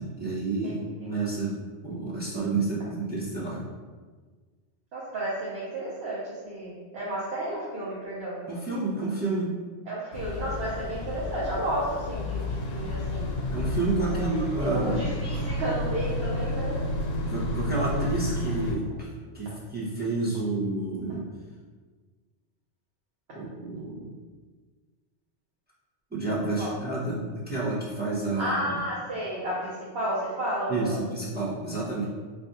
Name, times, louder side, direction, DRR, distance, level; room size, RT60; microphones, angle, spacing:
voice 1, 0.0-1.6 1.8-3.6 8.5-9.5 13.5-15.1 15.3-15.4 17.2-19.1 19.3-21.2 23.3-24.1 26.1-28.8 30.7-32.1, right 3 dB, 15° right, -7 dB, 0.3 m, -29 dB
voice 2, 4.9-8.4 9.9-13.3 14.0-16.8 26.6-26.7 28.4-31.1, right 1 dB, 70° right, -8 dB, 0.9 m, -32 dB
sound 1, 10.1-18.7, left 1 dB, 85° left, 0.8 m, -31 dB
2.4 x 2.3 x 3.9 m, 1.4 s
omnidirectional pair, 1.1 m